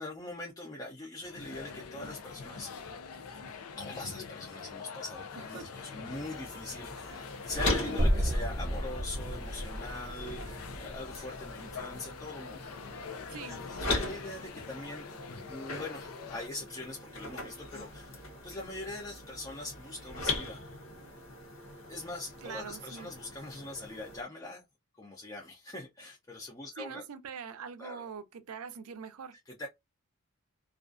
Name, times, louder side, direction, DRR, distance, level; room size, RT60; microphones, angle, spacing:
voice 1, 0.0-2.7 3.1-3.2 3.8-12.6 13.1-15.1 15.5-20.6 21.9-24.6 25.0-27.0 27.8-28.1 29.5-29.7, left 2 dB, 15° left, 0.4 m, -42 dB
sound 1, 1.2-16.5, left 5 dB, 90° left, 0.5 m, -45 dB
sound 2, 6.1-24.2, left 2 dB, 65° left, 0.9 m, -40 dB
sound 3, 8.0-12.2, equal, 35° right, 0.8 m, -32 dB
voice 2, 13.3-13.6 22.4-23.1 26.8-29.4, right 6 dB, 80° right, 0.5 m, -43 dB
2.4 x 2.3 x 2.3 m
head